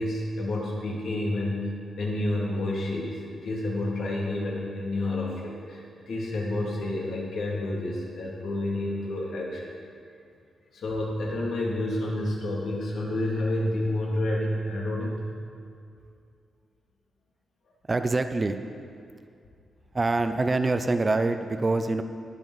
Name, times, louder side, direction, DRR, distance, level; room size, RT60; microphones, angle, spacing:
voice 1, 0.0-1.7 2.0-9.7 10.7-15.2, left 1 dB, 65° left, -3 dB, 2.3 m, -29 dB
voice 2, 17.9-18.6 19.9-22.0, right 3 dB, 20° right, 8 dB, 0.4 m, -25 dB
19.5 x 7.1 x 3.9 m, 2.3 s
wide cardioid pair, 180°, 0 cm